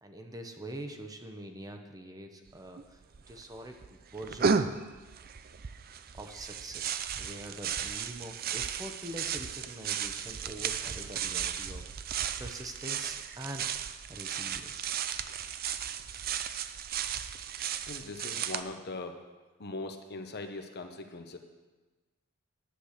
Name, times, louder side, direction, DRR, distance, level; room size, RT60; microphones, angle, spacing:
voice 1, 0.0-3.0 3.3-4.5 6.1-13.7 14.1-14.9 15.3-15.5, right 1 dB, 15° right, 4 dB, 0.9 m, -44 dB
sound 1, 2.5-2.6 2.8-3.4 3.8-18.6, right 7 dB, 45° right, 0.5 m, -35 dB
voice 2, 17.9-19.2 19.6-21.4, left 2 dB, 50° left, 5 dB, 1.0 m, -40 dB
10.0 x 8.7 x 6.6 m, 1.2 s
head